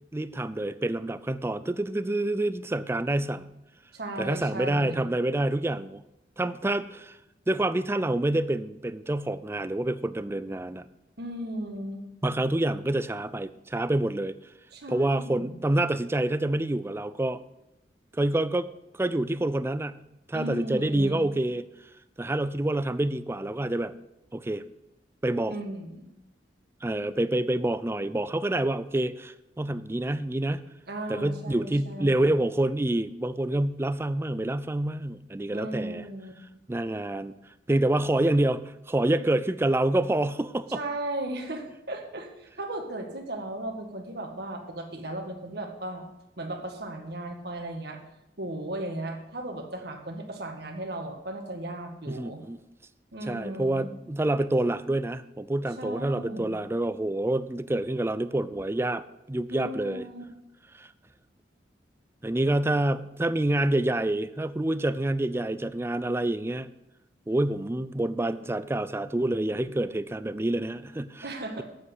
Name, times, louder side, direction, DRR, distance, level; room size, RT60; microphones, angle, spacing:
voice 1, 0.1-3.5 4.2-6.0 6.4-7.2 7.5-10.9 12.2-14.3 14.9-17.4 18.2-18.7 19.0-20.0 20.3-21.6 22.2-23.9 24.3-24.6 25.2-25.6 26.8-30.7 31.1-36.0 36.7-37.3 37.7-40.8 52.1-52.6 53.3-60.0 60.8-60.9 62.2-66.7 67.3-71.2, right 1 dB, 15° right, 14 dB, 0.4 m, -27 dB
voice 2, 3.9-5.1 11.2-12.1 14.7-15.6 20.3-21.3 25.5-26.1 30.9-32.3 35.5-36.3 40.7-46.0 46.4-48.0 48.4-52.4 53.1-53.9 55.8-56.5 59.5-60.2 71.2-71.6, right 1 dB, 60° right, 3 dB, 1.7 m, -36 dB
8.6 x 7.6 x 8.0 m, 0.89 s
head